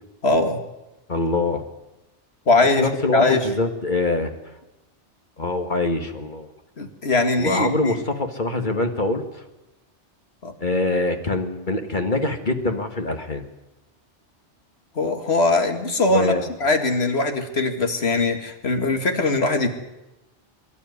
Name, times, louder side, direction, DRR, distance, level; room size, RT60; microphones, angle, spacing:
voice 1, 0.2-0.6 2.5-3.5 6.8-7.9 10.4-10.5 15.0-16.3 16.6-19.7, left 2 dB, 60° left, 6 dB, 2.4 m, -21 dB
voice 2, 1.1-1.6 2.8-4.3 5.4-6.5 7.4-9.4 10.6-13.4 16.1-16.4, left 2 dB, 40° left, 6 dB, 1.9 m, -24 dB
23.5 x 12.5 x 9.6 m, 0.98 s
omnidirectional pair, 1.2 m